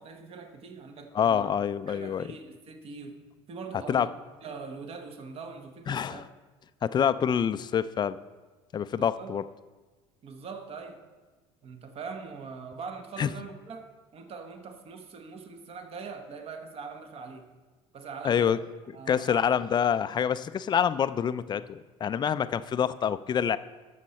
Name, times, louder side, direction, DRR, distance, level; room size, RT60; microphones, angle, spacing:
voice 1, 0.0-1.5 1.9-3.2 3.5-4.1 4.4-6.2 8.9-9.4 10.2-11.0 11.6-17.5 17.9-18.6 18.9-19.5, right 5 dB, 45° right, 6 dB, 1.2 m, -42 dB
voice 2, 1.1-2.2 3.9-4.1 5.9-6.2 6.8-8.2 8.7-9.4 13.2-13.3 18.2-18.6 19.1-23.6, left 8 dB, 30° left, 14 dB, 0.4 m, -26 dB
12.5 x 6.7 x 4.3 m, 1.3 s
supercardioid pair, 90°, 14 cm